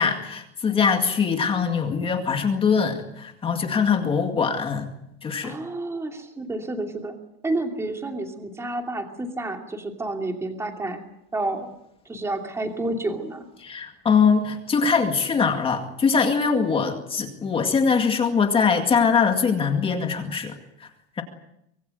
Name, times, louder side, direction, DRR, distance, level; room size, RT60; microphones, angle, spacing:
voice 1, 0.0-4.9 5.2-5.6 13.6-20.6 20.8-20.9, left 5 dB, 15° left, 5 dB, 2.1 m, -22 dB
voice 2, 5.4-7.1 7.4-11.0 11.3-11.7 12.1-13.5, right 2 dB, 10° right, 4 dB, 2.7 m, -29 dB
25.0 x 22.5 x 7.9 m, 0.78 s
cardioid pair, 175°, 33 cm